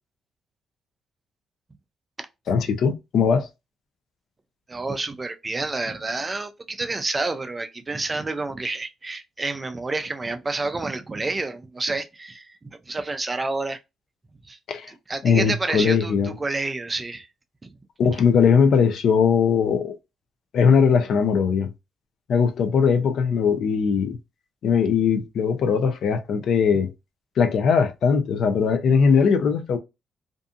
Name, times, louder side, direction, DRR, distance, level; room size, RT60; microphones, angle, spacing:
voice 1, 2.5-3.5 14.7-14.9 15.2-16.3 18.0-20.0 20.5-21.7 22.3-24.2 24.6-26.9 27.4-29.8, left 6 dB, 65° left, 0.5 m, -20 dB
voice 2, 4.7-12.6 12.9-13.8 14.5-14.6 14.9-17.3, right 3 dB, 25° right, 0.4 m, -29 dB
2.5 x 2.5 x 2.4 m
cardioid pair, 90°, 0 cm